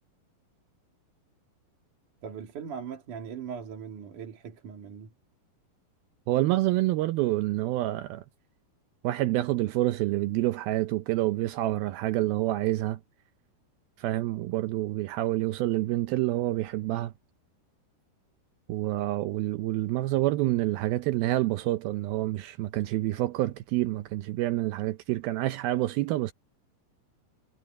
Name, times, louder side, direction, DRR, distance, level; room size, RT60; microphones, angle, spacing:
voice 1, 2.2-5.1, right 7 dB, 50° right, 3.7 m, -40 dB
voice 2, 6.3-8.2 9.0-13.0 14.0-17.1 18.7-26.3, right 16 dB, 80° right, 2.2 m, -27 dB
omnidirectional pair, 4.9 m